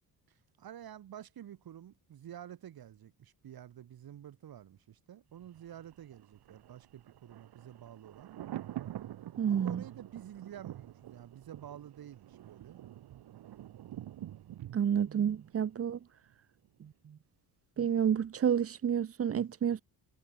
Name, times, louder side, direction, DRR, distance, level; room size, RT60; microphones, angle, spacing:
voice 1, 0.3-8.3 9.5-12.8, right 10 dB, 65° right, 3.5 m, -50 dB
Thunder, 5.4-16.3 16.6-16.7, right 12 dB, 90° right, 3.2 m, -47 dB
voice 2, 9.4-9.8 14.7-16.0 16.8-17.2 17.8-19.8, right 8 dB, 40° right, 0.9 m, -30 dB
cardioid pair, 135°, 38 cm